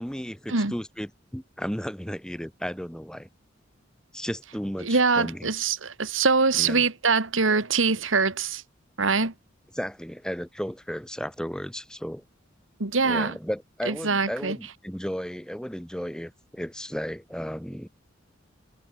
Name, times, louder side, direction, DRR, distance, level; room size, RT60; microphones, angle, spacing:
voice 1, 0.0-3.3 4.1-5.5 6.6-6.8 9.7-12.2 13.0-17.9, equal, 5° left, 6.7 m, -34 dB
voice 2, 4.8-8.6 9.0-9.3 12.8-13.4 13.9-14.6, right 4 dB, 80° right, 2.0 m, -23 dB
head